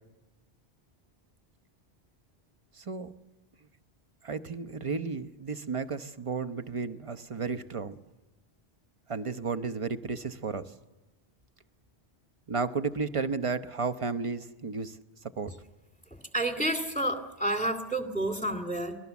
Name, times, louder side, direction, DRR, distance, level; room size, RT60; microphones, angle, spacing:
voice 1, 2.7-3.1 4.2-8.0 9.1-10.7 12.5-15.0 15.4-15.5, right 4 dB, 30° right, 9 dB, 0.9 m, -33 dB
voice 2, 16.3-19.0, right 1 dB, 5° left, 7 dB, 2.4 m, -30 dB
29.0 x 20.0 x 7.1 m, 1.1 s
omnidirectional pair, 1.1 m